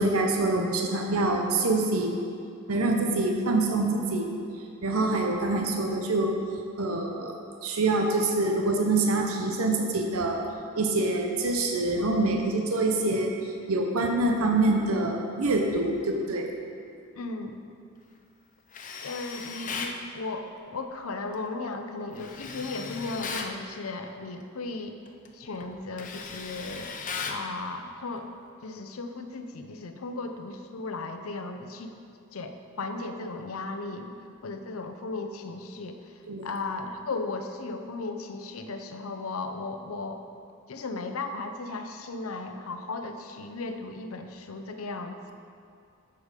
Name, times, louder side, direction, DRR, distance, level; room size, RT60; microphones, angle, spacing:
voice 1, 0.0-2.2 2.7-4.3 4.8-6.3 6.8-7.3 7.6-10.4 10.8-16.5 36.3-36.5, right 2 dB, 85° right, 2 dB, 0.8 m, -25 dB
voice 2, 17.2-17.6 19.0-25.0 25.3-27.0 27.2-28.3 28.6-31.9 32.3-34.1 34.4-36.0 36.4-40.2 40.7-45.3, left 3 dB, 80° left, 6 dB, 0.7 m, -36 dB
Tools, 18.7-20.0 22.2-23.6 25.1-25.3 25.6-27.5, left 5 dB, 40° left, 0.6 m, -37 dB
8.1 x 7.0 x 5.1 m, 2.4 s
head